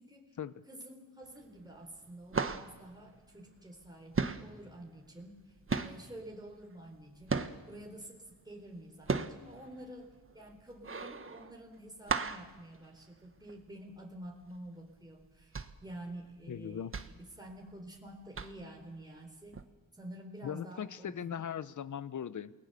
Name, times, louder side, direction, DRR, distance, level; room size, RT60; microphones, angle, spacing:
voice 1, 0.0-0.4 0.7-19.6 19.9-21.4, right 1 dB, 10° right, 0 dB, 4.0 m, -49 dB
sound 1, 1.2-1.7 1.9-7.9 8.3-13.6 14.0-14.1 14.4-14.7 15.2-18.0 18.3-18.8 19.5-19.6, right 4 dB, 40° right, 1.4 m, -36 dB
voice 2, 16.5-16.9 20.4-22.5, left 8 dB, 65° left, 16 dB, 0.9 m, -39 dB
29.0 x 19.5 x 6.9 m, 1.2 s
cardioid pair, 80°, 33 cm